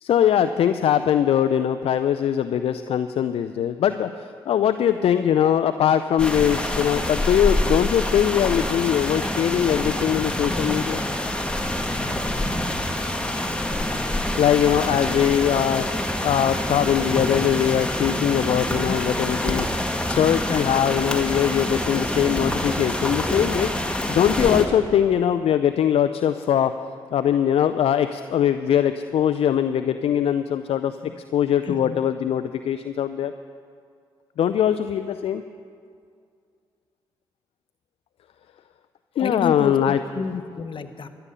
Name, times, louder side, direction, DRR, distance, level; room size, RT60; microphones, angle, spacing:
voice 1, 0.0-11.0 14.4-19.7 20.1-26.7 27.1-33.3 34.4-35.4 39.2-40.0, left 9 dB, 65° left, 10 dB, 0.4 m, -21 dB
sound 1, 6.2-24.7, left 1 dB, 10° left, 1.8 m, -26 dB
voice 2, 20.5-20.8 31.0-31.1 31.6-32.0 39.2-41.1, left 5 dB, 50° left, 10 dB, 0.9 m, -30 dB
13.0 x 6.9 x 9.8 m, 2.2 s
supercardioid pair, 45°, 11 cm